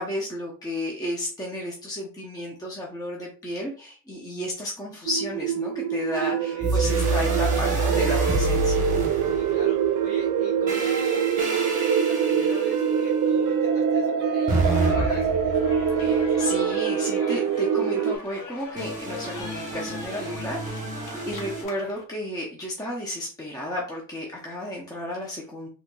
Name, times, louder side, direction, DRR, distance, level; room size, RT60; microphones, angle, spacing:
voice 1, 0.0-8.9 16.0-25.7, left 1 dB, 10° left, -2 dB, 0.6 m, -33 dB
sound 1, 5.1-18.2, right 7 dB, 70° right, 0.5 m, -24 dB
voice 2, 6.2-6.7 9.2-15.3 20.9-21.3, left 2 dB, 40° left, 0 dB, 1.5 m, -43 dB
sound 2, 6.6-9.9 10.7-13.2 14.5-16.6 18.8-21.6, right 1 dB, 20° right, 1.0 m, -28 dB
sound 3, 14.7-22.0, left 2 dB, 60° left, 1.0 m, -41 dB
3.9 x 2.9 x 2.2 m, 0.39 s
cardioid pair, 145°, 35 cm